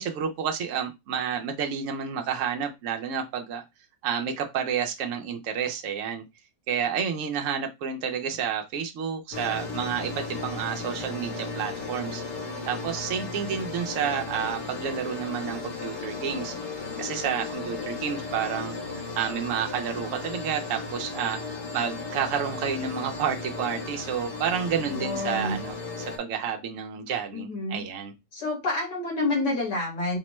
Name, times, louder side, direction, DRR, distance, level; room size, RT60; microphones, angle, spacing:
voice 1, 0.0-3.6 4.0-6.2 6.7-12.2 12.7-16.5 17.0-18.8 19.1-28.1, right 7 dB, 65° right, 3 dB, 0.8 m, -30 dB
sound 1, 9.3-26.2, left 3 dB, 60° left, 1.2 m, -35 dB
voice 2, 24.9-25.6 27.3-27.8 28.3-30.2, left 2 dB, 85° left, -1 dB, 2.2 m, -28 dB
4.3 x 2.1 x 3.0 m, 0.22 s
omnidirectional pair, 1.7 m